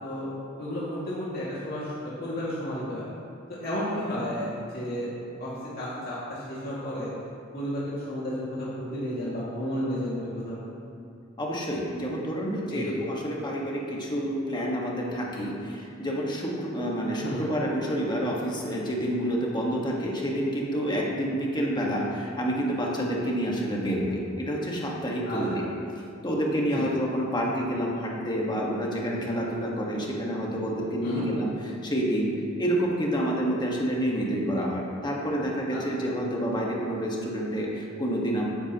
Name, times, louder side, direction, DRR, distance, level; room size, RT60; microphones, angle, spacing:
voice 1, 0.6-3.1 3.5-4.5 4.7-5.1 5.4-7.1 7.5-10.6 12.7-12.9 17.2-17.5 25.3-25.4 26.7-26.9 31.0-31.2 35.7-35.8, equal, 50° left, -9 dB, 2.2 m, -32 dB
voice 2, 11.4-25.7 26.2-38.5, equal, 20° left, -3 dB, 1.6 m, -28 dB
13.5 x 10.5 x 3.0 m, 2.6 s
head